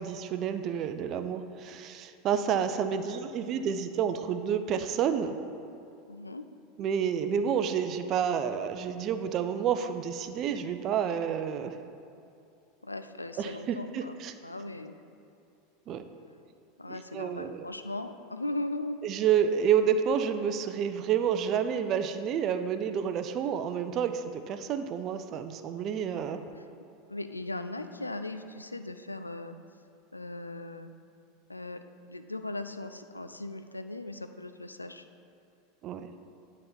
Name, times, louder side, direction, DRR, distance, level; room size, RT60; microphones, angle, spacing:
voice 1, 0.0-5.3 6.8-11.8 13.4-14.3 15.9-16.0 16.9-17.7 19.0-26.4 35.8-36.1, right 8 dB, 40° right, 9 dB, 0.5 m, -29 dB
voice 2, 6.1-6.4 12.8-14.9 16.8-19.0 27.1-29.6 30.1-30.9 31.5-31.8 32.1-35.1, left 2 dB, 85° left, 9 dB, 0.3 m, -38 dB
9.8 x 4.2 x 5.2 m, 2.6 s
figure-of-eight pair, 85°, 0 cm